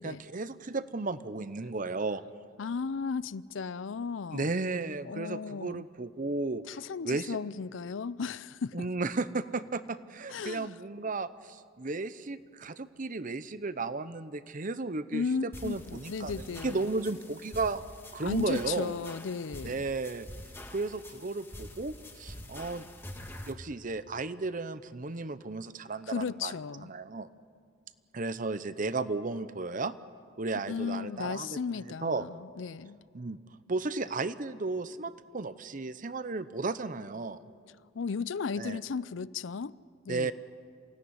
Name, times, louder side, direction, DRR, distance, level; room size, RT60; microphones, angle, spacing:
voice 1, 0.0-2.2 4.3-6.6 7.0-7.4 8.7-17.8 18.1-19.0 19.6-20.3 20.7-22.9 23.5-26.5 26.8-27.3 28.1-29.9 30.4-32.3 33.1-33.4 33.7-37.4 38.6-38.8 40.1-40.3, right 3 dB, 45° right, 0.8 m, -34 dB
voice 2, 2.6-4.5 5.1-5.8 6.7-8.9 10.3-10.7 15.1-16.8 18.2-19.8 26.1-26.9 30.7-33.0 37.9-39.7 40.0-40.3, left 5 dB, 80° left, 0.5 m, -35 dB
sound 1, 15.5-23.5, left 1 dB, 10° left, 1.6 m, -46 dB
27.5 x 17.0 x 9.7 m
head